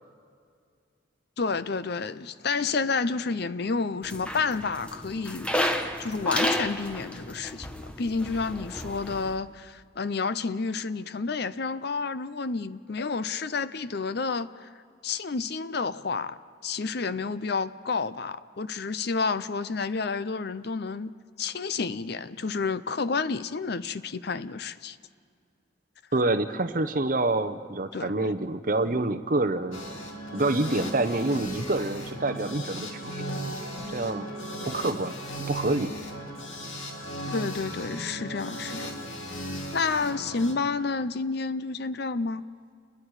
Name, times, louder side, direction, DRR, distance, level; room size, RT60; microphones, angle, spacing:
voice 1, 1.4-5.5 6.0-14.7 15.0-25.0 27.9-28.3 37.3-38.9 39.7-42.4, left 4 dB, 50° left, 14 dB, 0.6 m, -30 dB
sound 1, 4.0-9.3, equal, 5° left, 1.0 m, -32 dB
voice 2, 26.1-29.8 30.3-34.3 34.7-35.2 35.5-35.9, right 2 dB, 40° right, 10 dB, 0.8 m, -27 dB
sound 2, 29.7-40.5, equal, 80° left, 2.3 m, -37 dB
29.5 x 21.0 x 4.9 m, 2.2 s
head